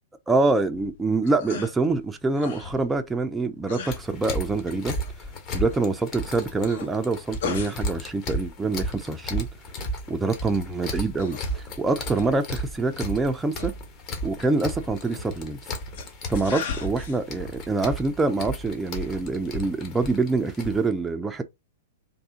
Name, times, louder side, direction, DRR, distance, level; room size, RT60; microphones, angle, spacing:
voice 1, 0.3-4.9 5.5-9.5 10.1-13.7 14.2-15.6 16.3-21.4, right 3 dB, 10° right, 0.4 m, -25 dB
sound 1, 0.6-19.4, left 6 dB, 60° left, 0.8 m, -41 dB
sound 2, 3.9-20.8, equal, 35° left, 1.0 m, -34 dB
3.5 x 2.7 x 2.7 m
figure-of-eight pair, 110°, 0 cm